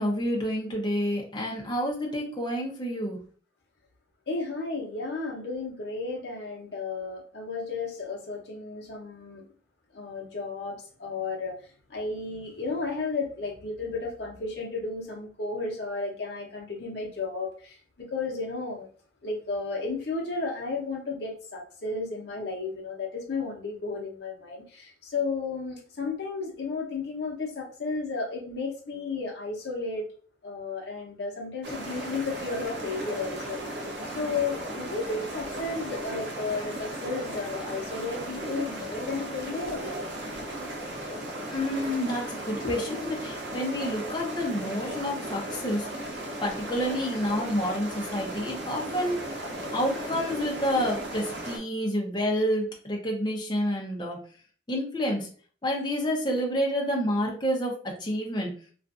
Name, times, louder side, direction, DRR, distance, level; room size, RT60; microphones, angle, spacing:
voice 1, 0.0-3.2 41.5-45.9 46.4-49.2 49.7-54.2 54.7-55.3 55.6-58.5, equal, 25° left, -1 dB, 0.6 m, -29 dB
voice 2, 4.3-9.4 9.9-11.6 11.9-18.9 19.2-30.1 30.4-40.0, left 3 dB, 60° left, 0 dB, 0.8 m, -33 dB
sound 1, 31.6-51.6, right 1 dB, 65° right, 0.7 m, -36 dB
2.5 x 2.4 x 2.4 m, 0.43 s
head